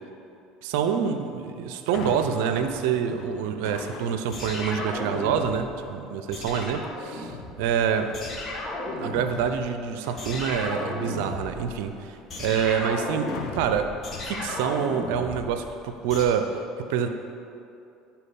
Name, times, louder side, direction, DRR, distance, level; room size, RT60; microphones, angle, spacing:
voice 1, 0.6-7.3 7.6-8.1 9.0-13.9 14.3-16.5 16.9-17.1, right 7 dB, 75° right, 8 dB, 0.5 m, -26 dB
sound 1, 1.9-4.5 4.9-5.3 7.8-8.4 8.9-11.8 13.3-15.2 15.6-15.7, left 5 dB, 60° left, 0.9 m, -44 dB
sound 2, 4.3-5.8 6.3-7.8 8.1-9.7 10.2-16.2, left 2 dB, 35° left, 1.6 m, -34 dB
10.0 x 4.5 x 5.3 m, 2.7 s
supercardioid pair, 85°, 0 cm